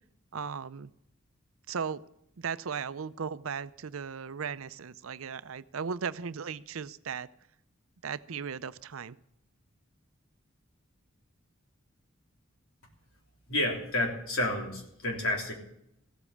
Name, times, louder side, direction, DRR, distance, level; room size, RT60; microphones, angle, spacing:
voice 1, 0.3-0.9 1.7-2.0 2.4-7.3 8.0-9.2, right 6 dB, 80° right, 15 dB, 0.6 m, -36 dB
voice 2, 13.5-15.5, left 1 dB, 85° left, 1 dB, 3.5 m, -30 dB
15.5 x 8.4 x 7.3 m, 0.76 s
head